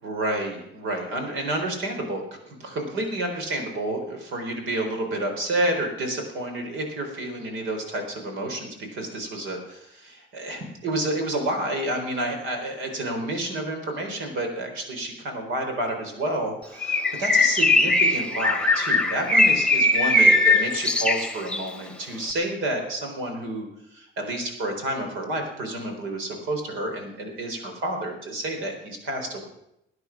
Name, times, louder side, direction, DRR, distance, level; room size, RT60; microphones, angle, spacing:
voice 1, 0.0-23.7 23.9-29.5, right 1 dB, 90° right, 4 dB, 4.2 m, -30 dB
Bird, 16.8-21.7, left 2 dB, 5° left, 1.1 m, -20 dB
19.5 x 9.7 x 6.0 m, 0.81 s
cardioid pair, 90°, 20 cm